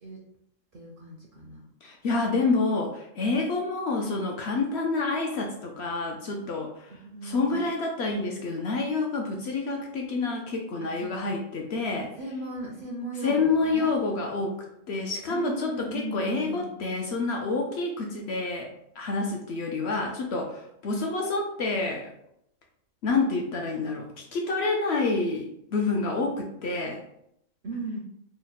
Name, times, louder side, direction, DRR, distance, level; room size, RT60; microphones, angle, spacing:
voice 1, 0.7-1.6 7.0-7.7 10.8-11.3 12.2-14.0 15.3-16.7 27.6-28.0, right 2 dB, 55° right, -2 dB, 0.6 m, -37 dB
voice 2, 1.8-6.9 7.2-12.1 13.2-14.6 14.9-18.7 19.0-22.1 23.0-27.0, left 3 dB, 65° left, 1 dB, 0.7 m, -28 dB
3.1 x 2.1 x 4.0 m, 0.76 s
omnidirectional pair, 1.4 m